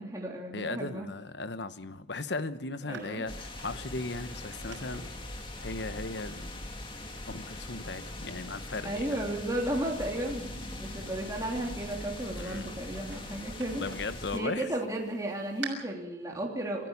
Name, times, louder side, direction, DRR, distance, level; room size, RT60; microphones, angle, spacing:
voice 1, 0.0-1.1 2.9-3.2 8.8-13.9 14.3-16.9, right 1 dB, 15° right, -1 dB, 3.2 m, -34 dB
voice 2, 0.5-5.0 5.6-6.6 7.3-9.1 12.4-12.7 13.8-14.7, left 3 dB, 65° left, 12 dB, 1.1 m, -37 dB
sound 1, 2.9-15.7, right 6 dB, 75° right, 6.3 m, -51 dB
sound 2, 3.3-14.4, left 1 dB, 25° left, 2.3 m, -41 dB
28.0 x 14.0 x 7.2 m, 0.89 s
head